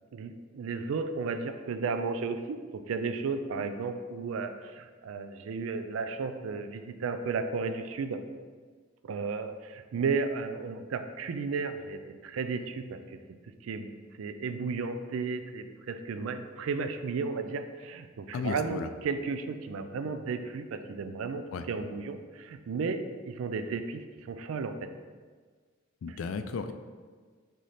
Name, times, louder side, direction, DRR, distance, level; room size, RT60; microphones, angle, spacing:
voice 1, 0.1-8.2 9.0-13.2 13.6-13.9 14.2-24.9 26.1-26.2, right 4 dB, 85° right, 9 dB, 0.3 m, -34 dB
voice 2, 18.3-18.9 21.5-21.6 26.0-26.7, left 5 dB, 75° left, 9 dB, 0.3 m, -34 dB
3.7 x 3.2 x 4.1 m, 1.6 s
head